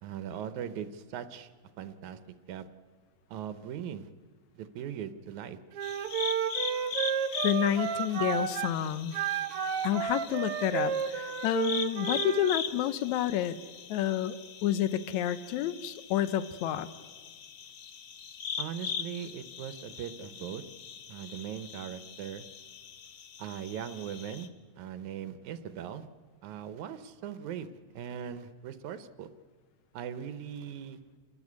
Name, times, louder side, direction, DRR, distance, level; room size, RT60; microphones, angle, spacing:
voice 1, 0.0-1.5 1.8-2.2 2.5-2.7 3.3-4.1 4.5-5.6 18.6-20.6 21.1-22.4 23.4-24.5 24.7-26.1 26.4-29.3 29.9-31.0, right 9 dB, 85° right, 12 dB, 2.2 m, -39 dB
Wind instrument woodwind instrument, 5.7-8.7 9.1-12.6, right 8 dB, 65° right, 1.6 m, -32 dB
sound 1, 5.8-24.5, left 7 dB, 65° left, 1.1 m, -41 dB
voice 2, 7.4-9.2 9.8-13.6 13.9-14.4 14.6-16.9, left 11 dB, 80° left, 13 dB, 2.1 m, -29 dB
27.5 x 12.5 x 9.6 m, 1.5 s
omnidirectional pair, 3.3 m